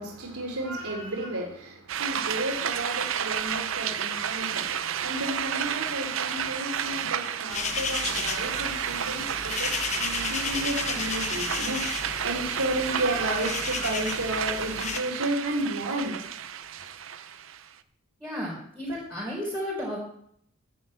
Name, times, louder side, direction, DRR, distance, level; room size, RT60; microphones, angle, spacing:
voice 1, 0.0-16.2, right 1 dB, 85° right, 1 dB, 3.8 m, -32 dB
sound 1, 1.9-17.7, right 8 dB, 65° right, 0.6 m, -31 dB
sound 2, 7.5-15.0, left 6 dB, 30° left, 0.7 m, -33 dB
voice 2, 18.2-20.0, equal, 10° right, -7 dB, 4.3 m, -33 dB
11.0 x 7.3 x 8.0 m, 0.67 s
head